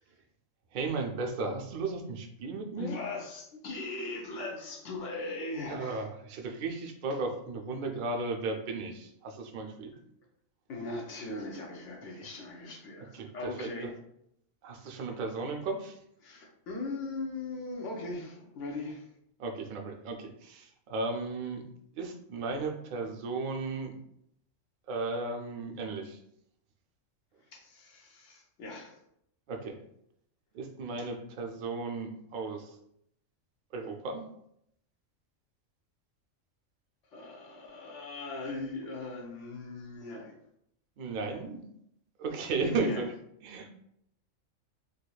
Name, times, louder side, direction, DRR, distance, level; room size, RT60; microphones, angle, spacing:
voice 1, 0.7-3.0 5.7-9.9 13.1-13.9 14.6-16.0 19.4-21.6 22.0-24.0 24.9-26.2 29.5-29.8 30.5-32.7 33.7-34.2 41.0-41.6 42.2-43.1 43.4-43.7, right 3 dB, 70° right, 3 dB, 0.5 m, -35 dB
voice 2, 2.8-6.1 10.7-13.9 16.2-19.1 27.5-29.0 37.1-40.4 42.6-43.0, left 2 dB, 70° left, 0 dB, 1.0 m, -39 dB
3.9 x 2.8 x 2.3 m, 0.75 s
omnidirectional pair, 1.3 m